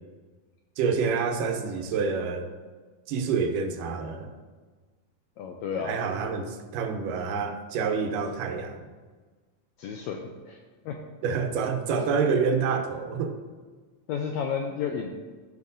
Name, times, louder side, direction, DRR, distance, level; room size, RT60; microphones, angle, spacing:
voice 1, 0.8-2.5 3.1-4.3 5.8-8.9 11.2-13.4, right 5 dB, 80° right, 5 dB, 2.4 m, -27 dB
voice 2, 5.4-6.0 9.8-10.6 10.8-11.0 14.1-15.1, left 6 dB, 85° left, 2 dB, 1.6 m, -32 dB
14.0 x 5.6 x 2.7 m, 1.4 s
omnidirectional pair, 3.8 m